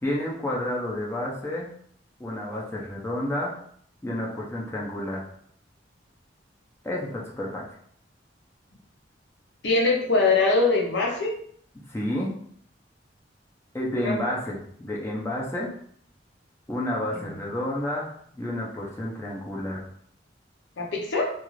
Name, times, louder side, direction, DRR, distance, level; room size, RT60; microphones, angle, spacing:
voice 1, 0.0-1.7 2.2-3.5 4.0-5.2 6.8-7.6 11.9-12.3 13.7-15.7 16.7-19.9, left 1 dB, 15° left, -4 dB, 0.5 m, -30 dB
voice 2, 9.6-11.3 13.9-14.1 17.2-17.3 20.8-21.3, left 3 dB, 65° left, 0 dB, 0.6 m, -22 dB
2.4 x 2.4 x 3.1 m, 0.62 s
head